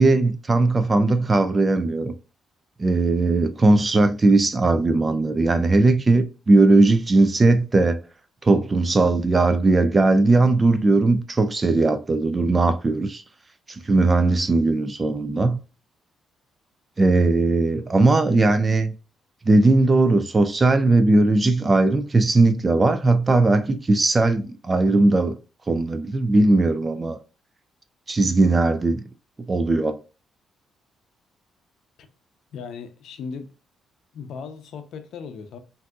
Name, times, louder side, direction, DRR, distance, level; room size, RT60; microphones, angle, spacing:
voice 1, 0.0-2.1 2.8-8.0 8.4-13.2 13.7-15.6 17.0-18.9 19.5-25.3 25.7-27.2 28.1-29.0 29.5-30.0, right 2 dB, 25° right, 0.4 m, -18 dB
voice 2, 32.5-33.5 34.1-35.6, left 5 dB, 70° left, 0.5 m, -37 dB
3.6 x 2.6 x 2.3 m
cardioid pair, 90°, 0 cm